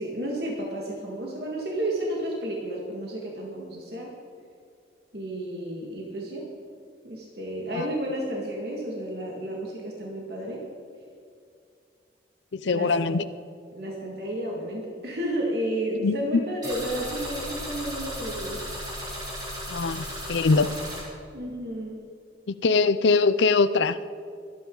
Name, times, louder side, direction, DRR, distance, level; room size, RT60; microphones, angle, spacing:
voice 1, 0.0-4.1 5.1-6.4 7.0-10.6 12.7-12.9 13.7-18.6 21.3-22.0, right 1 dB, 60° right, -2 dB, 2.0 m, -32 dB
voice 2, 12.5-13.2 16.0-16.4 19.7-20.7 22.5-24.0, left 4 dB, 75° left, 13 dB, 0.5 m, -22 dB
sound 1, 16.6-21.0, equal, 20° right, 3.9 m, -35 dB
23.5 x 9.5 x 3.9 m, 2.3 s
head